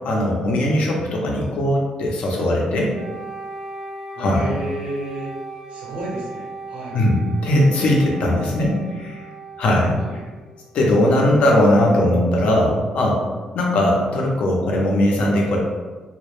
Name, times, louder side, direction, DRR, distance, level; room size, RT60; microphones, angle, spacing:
voice 1, 0.0-2.9 4.2-4.5 6.9-9.3 9.6-10.0 10.7-13.2 13.5-15.6, left 1 dB, 75° left, -1 dB, 0.5 m, -19 dB
Wind instrument woodwind instrument, 2.9-10.9, right 3 dB, 10° right, 0.4 m, -37 dB
voice 2, 4.2-5.3 5.7-7.0 10.0-10.2, right 1 dB, 80° right, -4 dB, 0.7 m, -31 dB
2.1 x 2.0 x 2.9 m, 1.3 s
cardioid pair, 150°, 2 cm